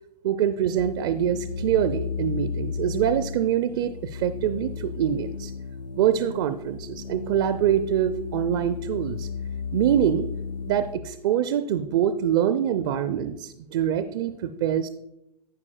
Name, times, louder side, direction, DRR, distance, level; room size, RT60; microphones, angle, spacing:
voice 1, 0.2-5.5 6.0-9.3 9.7-10.3 10.7-14.9, right 10 dB, 35° right, 10 dB, 0.4 m, -24 dB
sound 1, 0.8-11.0, left 5 dB, 90° left, 0.5 m, -34 dB
11.5 x 8.3 x 2.2 m, 0.86 s
figure-of-eight pair, 110°, 21 cm